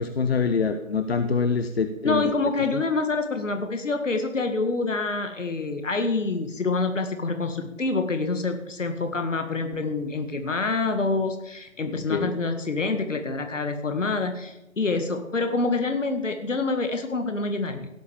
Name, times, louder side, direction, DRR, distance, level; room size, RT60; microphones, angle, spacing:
voice 1, 0.0-2.3 2.7-2.8 12.1-12.3, left 5 dB, 45° left, 8 dB, 1.1 m, -25 dB
voice 2, 2.0-17.9, left 3 dB, 65° left, 6 dB, 2.1 m, -26 dB
17.0 x 8.2 x 7.3 m, 0.94 s
figure-of-eight pair, 145°, 41 cm